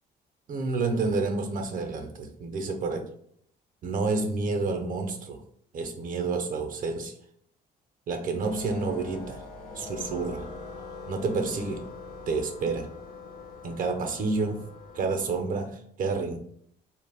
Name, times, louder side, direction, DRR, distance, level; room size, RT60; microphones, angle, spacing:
voice 1, 0.5-3.1 3.8-5.4 5.7-7.1 8.1-9.4 9.8-10.5 11.1-11.9 12.3-12.9 13.6-14.6 14.9-16.4, right 3 dB, 50° right, 5 dB, 0.5 m, -29 dB
sound 1, 8.4-15.4, left 4 dB, 55° left, 0.6 m, -43 dB
2.2 x 2.0 x 3.2 m, 0.64 s
cardioid pair, 110°, 18 cm